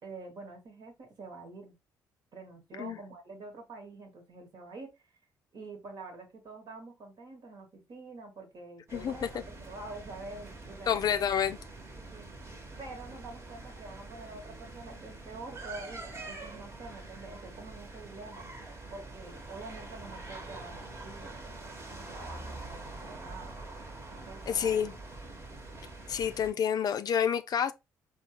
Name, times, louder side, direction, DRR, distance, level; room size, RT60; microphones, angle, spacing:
voice 1, 0.0-1.8 2.3-4.9 5.5-11.2 12.1-12.3 12.8-18.5 18.9-21.3 21.9-23.6 24.1-24.8, right 3 dB, 60° right, 1.3 m, -46 dB
voice 2, 8.9-9.4 10.9-11.6 24.5-25.0 26.1-27.7, left 8 dB, 50° left, 0.4 m, -29 dB
sound 1, 8.9-26.5, right 2 dB, 35° right, 1.1 m, -45 dB
4.1 x 2.3 x 2.8 m
hypercardioid pair, 55°, 8 cm